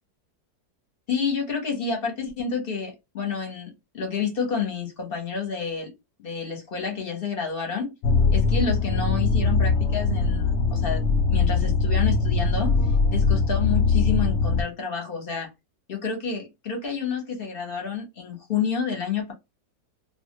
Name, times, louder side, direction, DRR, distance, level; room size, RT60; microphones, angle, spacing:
voice 1, 1.1-5.9 6.2-7.9 8.3-11.0 11.3-12.7 13.1-15.5 15.9-19.3, left 6 dB, 40° left, 0.9 m, -29 dB
sound 1, 8.0-14.6, left 4 dB, 90° left, 0.6 m, -21 dB
2.7 x 2.4 x 2.8 m
omnidirectional pair, 1.8 m